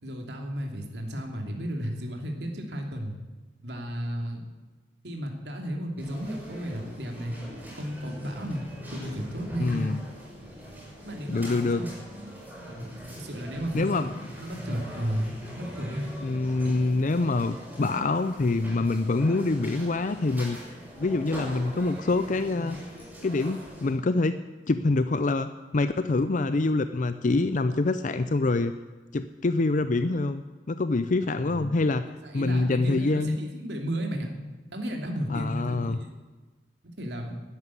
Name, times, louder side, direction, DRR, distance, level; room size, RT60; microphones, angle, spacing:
voice 1, 0.0-3.1 3.6-4.4 5.0-7.3 7.8-8.6 8.9-9.9 11.0-11.9 12.7-12.9 13.2-14.1 14.4-16.0 16.6-16.7 31.5-31.8 32.2-34.3 34.7-36.1 37.0-37.3, equal, 70° right, 2 dB, 2.9 m, -33 dB
sound 1, 6.0-23.9, equal, 10° right, 6.4 m, -42 dB
voice 2, 9.6-10.0 11.3-11.8 13.7-14.1 16.2-20.6 21.0-22.8 23.2-24.4 24.7-28.7 29.1-30.4 30.7-32.0 32.3-33.4 35.3-36.0, left 3 dB, 45° left, 11 dB, 0.5 m, -25 dB
13.0 x 11.0 x 9.8 m, 1.2 s
head